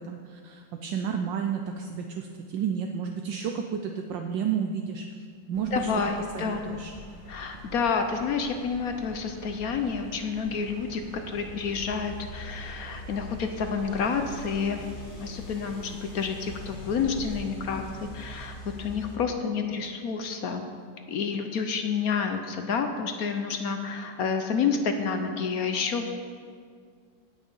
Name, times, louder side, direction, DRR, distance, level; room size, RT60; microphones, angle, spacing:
voice 1, 0.0-5.8 6.3-6.9, right 7 dB, 70° right, 4 dB, 1.3 m, -31 dB
sound 1, 5.5-19.2, left 1 dB, 35° left, 1.7 m, -43 dB
voice 2, 5.7-6.8 7.3-11.0 11.3-14.9 15.2-17.8 18.1-20.6 21.1-26.1, left 5 dB, 60° left, 6 dB, 1.0 m, -29 dB
17.0 x 6.4 x 5.5 m, 2.1 s
omnidirectional pair, 2.2 m